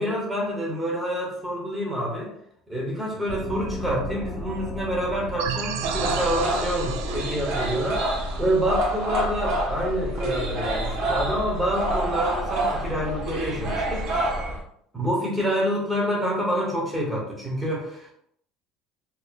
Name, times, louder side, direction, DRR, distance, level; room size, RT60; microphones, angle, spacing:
voice 1, 0.0-2.3 2.7-8.0 8.4-14.2 14.9-18.1, equal, 5° right, -3 dB, 0.8 m, -27 dB
Gong, 3.3-8.5, left 1 dB, 20° left, 1.4 m, -36 dB
sound 1, 5.4-9.8, right 7 dB, 85° right, 0.4 m, -34 dB
sound 2, 5.8-14.6, right 1 dB, 55° right, 1.0 m, -28 dB
4.0 x 2.8 x 2.3 m, 0.70 s
cardioid pair, 180°, 0 cm